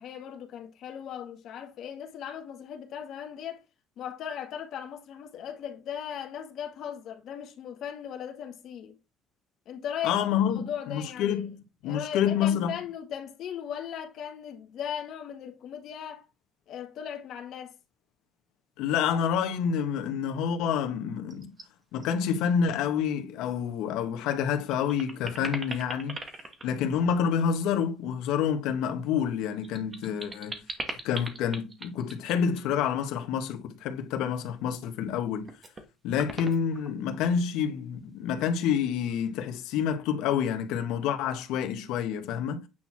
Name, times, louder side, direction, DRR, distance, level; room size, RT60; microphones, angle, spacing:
voice 1, 0.0-3.6 4.0-9.0 9.7-11.4 11.8-16.3 16.7-17.8, left 9 dB, 50° left, 2.0 m, -38 dB
voice 2, 10.0-11.6 11.8-12.7 18.8-21.5 21.9-26.2 26.6-30.6 31.0-35.5 36.0-42.6, left 8 dB, 80° left, 1.7 m, -28 dB
sound 1, 21.3-21.6 22.0-22.4 22.7-22.8 24.0-24.1 24.5-27.6 29.2-32.7 34.6-35.1 35.5-35.8 36.2-37.2, right 3 dB, 20° right, 1.5 m, -40 dB
9.5 x 4.6 x 6.1 m
cardioid pair, 170°, 0 cm